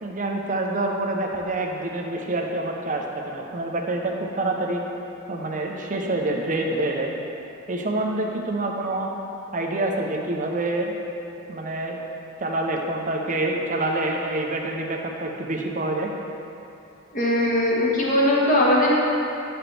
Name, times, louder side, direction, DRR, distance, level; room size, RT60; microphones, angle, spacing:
voice 1, 0.0-4.8 5.3-7.1 7.7-9.1 9.5-11.0 11.5-12.0 12.4-16.1, right 2 dB, 40° right, 1 dB, 0.7 m, -26 dB
voice 2, 17.1-18.9, left 1 dB, 40° left, -5 dB, 1.4 m, -20 dB
9.4 x 6.0 x 3.4 m, 2.9 s
head